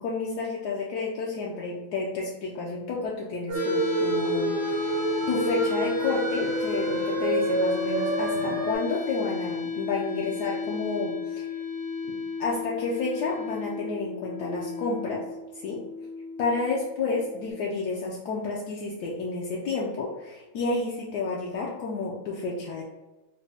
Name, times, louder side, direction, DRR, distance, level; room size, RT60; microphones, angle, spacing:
voice 1, 0.0-11.4 12.1-15.2 15.5-15.8 16.4-22.8, left 3 dB, 80° left, -3 dB, 0.9 m, -30 dB
sound 1, 3.5-17.5, left 5 dB, 50° left, 0.6 m, -33 dB
sound 2, 3.5-8.7, right 3 dB, 75° right, 1.1 m, -28 dB
4.0 x 2.1 x 3.3 m, 1.1 s
omnidirectional pair, 2.2 m